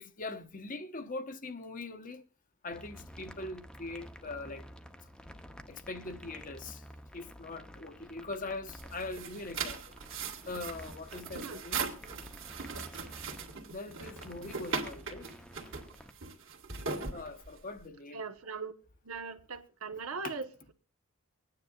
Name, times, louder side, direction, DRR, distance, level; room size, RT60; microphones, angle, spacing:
voice 1, 0.0-2.2 2.6-4.6 5.7-6.8 7.1-10.0 10.5-11.9 13.7-15.3 17.1-18.3 20.2-20.4, left 2 dB, 40° left, 0.9 m, -42 dB
sound 1, 2.7-16.1, equal, 5° left, 0.7 m, -51 dB
sound 2, 8.7-17.8, right 5 dB, 60° right, 2.0 m, -39 dB
voice 2, 18.1-18.7 19.0-20.7, right 4 dB, 85° right, 1.2 m, -40 dB
24.5 x 9.7 x 2.4 m
head